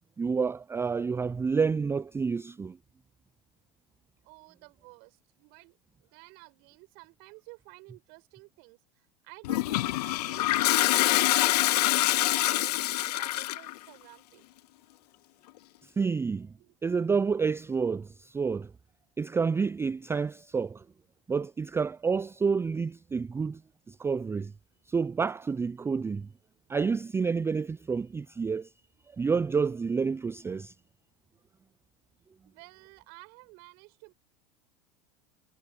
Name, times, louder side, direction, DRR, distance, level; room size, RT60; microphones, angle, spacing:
voice 1, 0.2-2.8 15.8-16.5 16.8-18.7 19.2-20.8 21.3-23.6 23.9-24.5 24.9-26.3 26.7-28.7 29.2-30.7, right 5 dB, 10° right, 0.4 m, -29 dB
voice 2, 4.2-5.8 6.0-14.6 16.6-16.7 32.4-34.1, right 31 dB, 60° right, 4.6 m, -52 dB
Toilet flush, 9.4-13.7, left 17 dB, 80° left, 0.4 m, -25 dB
hypercardioid pair, 90°, 20 cm